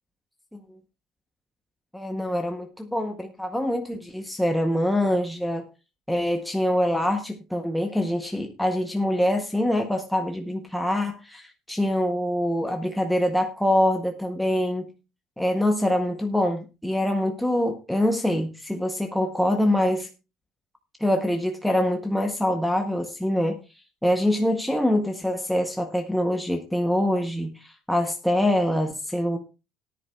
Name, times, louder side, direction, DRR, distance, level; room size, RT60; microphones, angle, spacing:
voice 1, 1.9-5.6 6.1-14.9 15.4-20.1 21.0-23.6 24.0-29.4, left 1 dB, ahead, 3 dB, 0.7 m, -24 dB
18.5 x 10.0 x 2.2 m, 0.29 s
cardioid pair, 175°, 0 cm